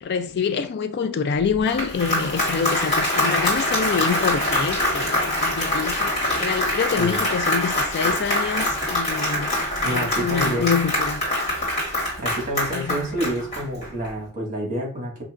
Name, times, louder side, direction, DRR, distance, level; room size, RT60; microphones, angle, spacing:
voice 1, 0.0-6.1 6.4-9.5 9.9-11.2 12.7-13.0, left 6 dB, 50° left, 0.3 m, -26 dB
Applause, 1.5-14.1, left 1 dB, 30° left, 2.0 m, -24 dB
voice 2, 9.8-10.7 12.2-15.2, right 1 dB, 35° right, 1.7 m, -28 dB
5.4 x 2.8 x 2.4 m
head